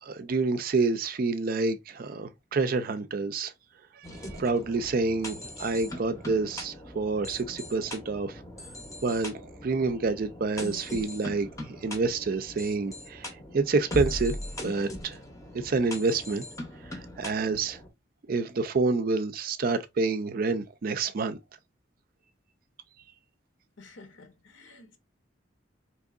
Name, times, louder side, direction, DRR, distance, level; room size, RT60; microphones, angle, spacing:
voice 1, 0.0-3.5 4.0-8.4 9.0-9.3 9.6-13.3 13.5-14.4 14.6-15.2 15.6-16.5 16.9-17.8 18.3-21.4, right 3 dB, 50° right, 0.4 m, -28 dB
sound 1, 4.0-17.9, left 1 dB, 15° left, 0.7 m, -40 dB
voice 2, 23.8-25.0, left 3 dB, 75° left, 0.8 m, -51 dB
3.6 x 3.0 x 2.4 m
head